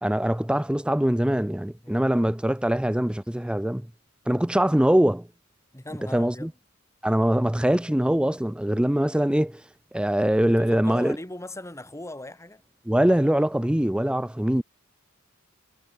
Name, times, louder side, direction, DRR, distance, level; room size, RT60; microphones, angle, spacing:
voice 1, 0.0-3.9 4.3-5.3 6.1-6.5 7.0-9.6 9.9-11.2 12.9-14.6, right 1 dB, 5° right, 0.5 m, -23 dB
voice 2, 1.8-2.3 5.7-6.5 10.5-12.6 14.6-14.7, left 1 dB, 15° left, 2.6 m, -39 dB
head